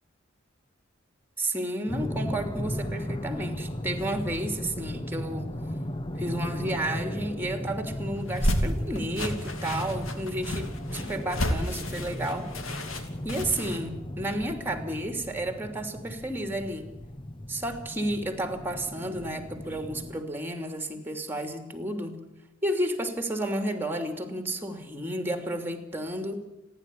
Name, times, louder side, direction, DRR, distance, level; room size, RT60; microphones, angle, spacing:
voice 1, 1.4-5.5 6.2-12.5 13.2-16.9 17.5-22.2 22.6-26.4, right 1 dB, 10° right, 6 dB, 2.9 m, -32 dB
sound 1, 1.9-20.2, equal, 25° left, 0.9 m, -36 dB
sound 2, 8.2-13.8, equal, 85° left, 3.1 m, -31 dB
30.0 x 11.5 x 9.9 m, 0.98 s
head